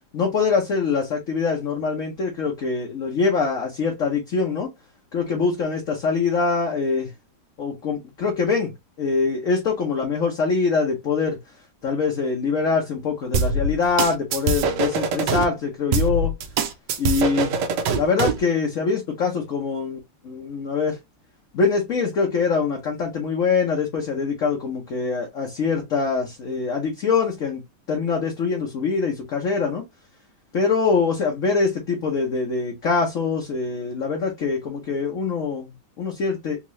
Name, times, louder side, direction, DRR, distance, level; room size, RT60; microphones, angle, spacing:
voice 1, 0.1-4.7 5.1-7.1 7.6-11.4 11.8-16.3 17.0-17.6 17.9-20.0 20.2-21.0 21.5-29.8 30.5-36.6, left 5 dB, 55° left, 1.0 m, -24 dB
sound 1, 13.3-15.4 15.9-18.4, right 4 dB, 70° right, 1.2 m, -23 dB
3.6 x 2.9 x 3.1 m
omnidirectional pair, 2.1 m